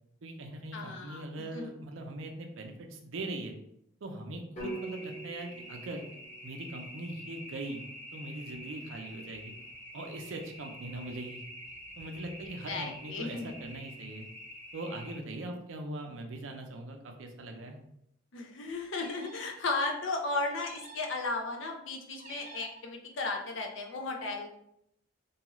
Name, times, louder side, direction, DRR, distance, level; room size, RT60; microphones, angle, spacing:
voice 1, 0.2-3.5 4.0-6.0 6.4-7.8 8.1-9.5 9.9-11.4 12.0-14.3 14.7-17.8, right 2 dB, 80° right, 3 dB, 0.5 m, -41 dB
voice 2, 0.7-1.2 1.5-1.7 12.7-13.5 18.3-24.5, left 3 dB, 75° left, 2 dB, 0.5 m, -35 dB
sound 1, 4.6-8.6, right 2 dB, 40° left, 1.0 m, -46 dB
sound 2, 4.6-15.2, equal, 10° left, 0.6 m, -47 dB
sound 3, 19.0-19.6 20.6-21.2 22.2-22.9, right 3 dB, 45° right, 0.7 m, -49 dB
2.7 x 2.4 x 3.0 m, 0.77 s
head